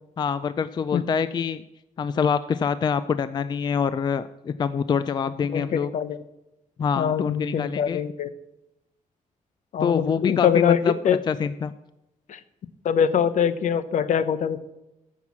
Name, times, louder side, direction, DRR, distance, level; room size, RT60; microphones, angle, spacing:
voice 1, 0.2-1.6 2.0-5.9 6.8-8.0 9.8-11.7, left 6 dB, 30° left, 14 dB, 0.3 m, -25 dB
voice 2, 5.5-6.2 7.0-8.3 9.7-11.2 12.3-12.4 12.8-14.6, left 8 dB, 65° left, 14 dB, 0.7 m, -23 dB
14.0 x 6.0 x 7.3 m, 0.91 s
wide cardioid pair, 170°, 14 cm